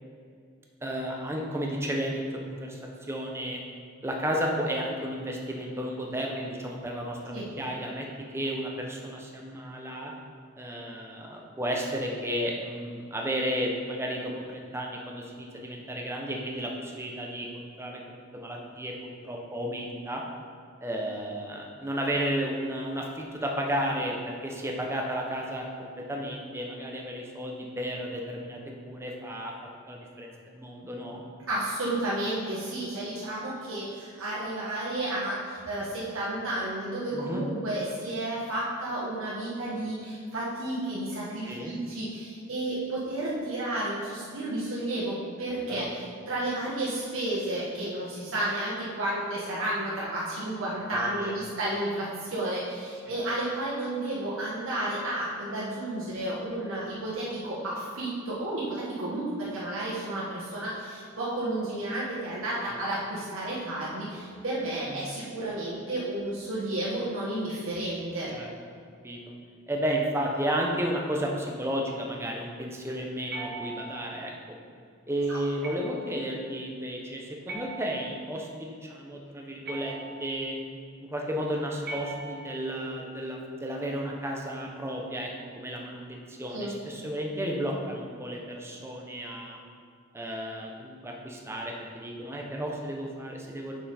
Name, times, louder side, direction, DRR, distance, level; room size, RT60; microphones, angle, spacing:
voice 1, 0.8-2.8 3.1-3.6 4.0-8.1 8.3-10.1 10.6-20.2 20.8-29.5 29.9-31.2 37.1-37.4 41.5-41.7 45.7-45.8 50.9-51.3 62.7-62.8 64.9-65.0 68.3-68.5 69.0-69.3 69.7-74.3 75.1-80.6 81.0-85.3 85.5-89.6 90.1-93.8, equal, 15° right, 0 dB, 0.8 m, -33 dB
voice 2, 31.5-68.3 75.3-75.4 86.5-86.7, right 1 dB, 70° right, -8 dB, 1.5 m, -32 dB
sound 1, 73.3-74.2 75.6-76.2 77.5-78.3 79.6-80.4 81.8-82.7, right 3 dB, 50° right, 0.9 m, -40 dB
6.9 x 5.6 x 4.3 m, 2.2 s
head